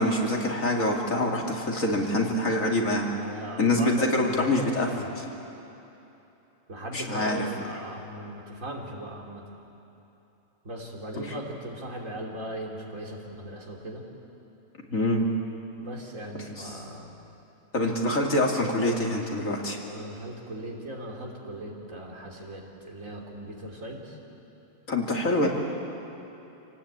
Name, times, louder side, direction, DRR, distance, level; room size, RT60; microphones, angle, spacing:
voice 1, 0.0-3.1 3.6-4.9 6.9-7.4 11.2-11.3 14.9-15.3 16.4-16.7 17.7-19.8 24.9-25.5, left 1 dB, 85° left, 0 dB, 3.0 m, -25 dB
voice 2, 3.2-5.1 6.7-9.4 10.6-14.1 15.8-17.1 19.8-24.2, right 1 dB, 75° right, -1 dB, 3.5 m, -38 dB
27.0 x 18.5 x 8.8 m, 3.0 s
omnidirectional pair, 1.4 m